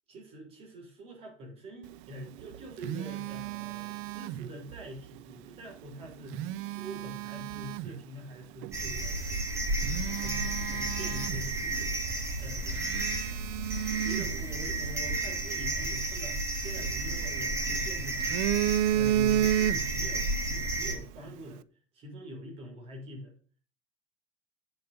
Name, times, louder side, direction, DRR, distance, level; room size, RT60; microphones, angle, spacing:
voice 1, 0.1-9.3 10.0-11.9 12.4-12.9 14.0-21.6 21.9-23.3, equal, 40° right, 1 dB, 5.9 m, -45 dB
Telephone, 2.3-4.8 6.1-8.0 8.6-8.8 9.3-9.4 9.8-11.8 12.1-12.2 12.7-15.1 16.6-17.6 18.0-20.2 20.4-20.7, right 12 dB, 65° right, 0.6 m, -32 dB
sound 1, 8.7-21.0, right 2 dB, 20° right, 2.7 m, -32 dB
8.4 x 7.9 x 6.8 m, 0.40 s
cardioid pair, 150°, 15 cm